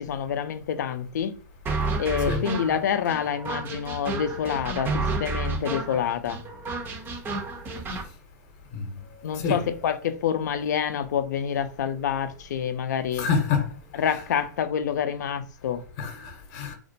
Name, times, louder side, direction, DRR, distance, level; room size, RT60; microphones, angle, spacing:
voice 1, 0.0-1.4 2.0-6.4 9.2-13.3 14.0-15.8, left 8 dB, 70° left, 0.4 m, -27 dB
sound 1, 1.7-8.1, right 3 dB, 20° right, 0.5 m, -30 dB
voice 2, 13.1-13.7 13.9-14.2 16.0-16.8, left 5 dB, 40° left, 0.7 m, -27 dB
2.4 x 2.1 x 2.6 m
hypercardioid pair, 115°, 10 cm